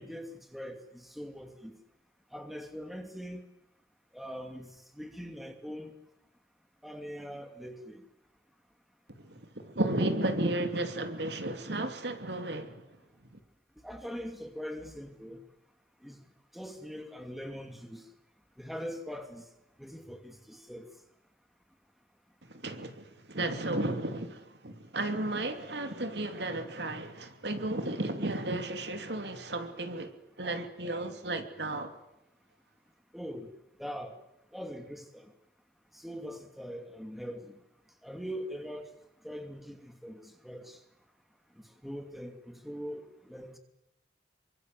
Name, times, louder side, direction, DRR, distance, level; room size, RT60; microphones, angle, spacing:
voice 1, 0.0-1.7 2.3-3.4 4.1-4.7 4.9-5.9 6.8-8.0 13.8-15.4 16.0-16.2 16.5-18.0 18.6-19.4 19.8-20.9 33.1-33.5 33.8-34.2 34.5-35.3 35.9-37.6 38.0-38.9 39.2-40.8 41.8-43.6, equal, ahead, 2.7 m, -42 dB
voice 2, 9.2-12.9 13.3-13.4 22.4-32.0, right 1 dB, 80° right, 2.9 m, -34 dB
27.0 x 23.5 x 7.8 m
head